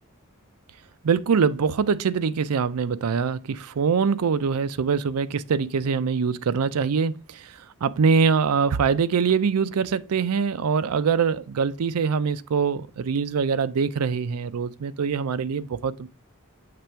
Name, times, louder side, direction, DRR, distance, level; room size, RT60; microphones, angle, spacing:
voice 1, 1.0-7.5 7.8-16.1, right 6 dB, 85° right, 0.4 m, -23 dB
6.7 x 3.4 x 4.4 m
head